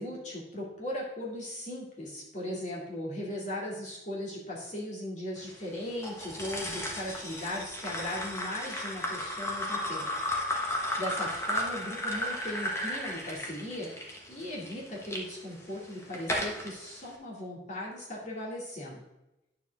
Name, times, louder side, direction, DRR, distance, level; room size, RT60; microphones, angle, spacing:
voice 1, 0.0-10.1 10.4-19.0, left 1 dB, 40° left, -4 dB, 2.4 m, -38 dB
sound 1, 6.0-15.2 15.8-16.7, left 1 dB, 15° left, 1.1 m, -34 dB
9.3 x 6.9 x 3.5 m, 0.94 s
head